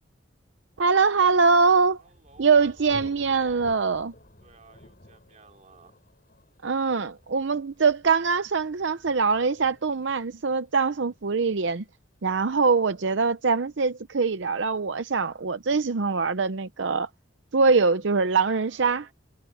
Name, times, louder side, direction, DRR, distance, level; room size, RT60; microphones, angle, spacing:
voice 1, 0.8-2.0 2.4-4.1 6.6-11.8 12.2-17.1 17.5-19.1, right 4 dB, 70° right, 0.7 m, -23 dB
Thunder, 1.6-13.1, left 1 dB, 50° left, 5.3 m, -52 dB
voice 2, 2.0-2.9 4.4-5.9 18.7-19.1, right 4 dB, 40° right, 3.0 m, -55 dB
head